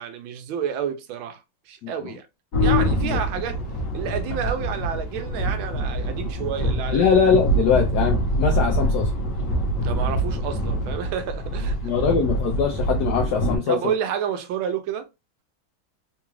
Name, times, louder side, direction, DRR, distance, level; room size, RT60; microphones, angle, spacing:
voice 1, 0.0-1.4 1.7-2.2 2.6-3.6 3.9-7.1 9.8-11.9 13.7-15.1, right 8 dB, 75° right, 1.4 m, -29 dB
voice 2, 1.8-2.1 3.0-3.2 6.9-9.1 11.8-13.9, left 6 dB, 80° left, 0.9 m, -22 dB
sound 1, 2.5-13.6, equal, 50° left, 1.1 m, -25 dB
3.8 x 2.3 x 3.0 m
omnidirectional pair, 2.3 m